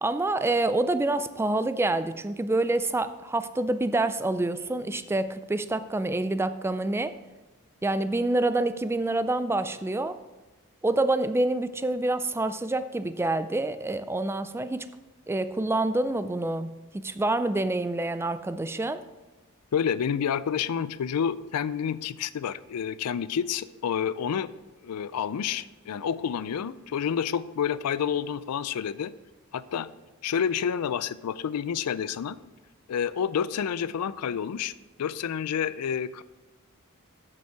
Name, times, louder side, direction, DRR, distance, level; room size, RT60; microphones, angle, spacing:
voice 1, 0.0-7.2 7.8-10.2 10.8-14.9 15.3-19.0, right 2 dB, 10° right, 12 dB, 0.3 m, -27 dB
voice 2, 19.7-24.5 24.8-29.1 29.5-29.9 30.2-32.4 32.9-34.7 35.0-36.2, left 8 dB, 85° left, 17 dB, 0.4 m, -29 dB
8.3 x 6.9 x 4.7 m, 1.2 s
head